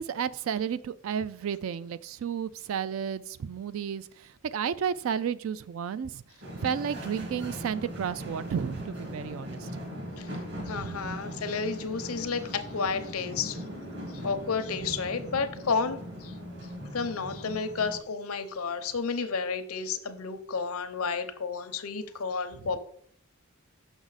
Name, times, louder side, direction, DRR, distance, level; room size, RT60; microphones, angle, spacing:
voice 1, 0.0-6.2 6.6-9.7 10.6-11.1 22.6-22.8, right 7 dB, 70° right, 16 dB, 0.3 m, -32 dB
sound 1, 6.4-18.0, equal, 50° right, 1.6 m, -40 dB
voice 2, 10.7-13.6 14.2-16.3 16.9-22.8, left 5 dB, 85° left, 8 dB, 0.7 m, -31 dB
6.3 x 6.1 x 4.0 m, 0.62 s
head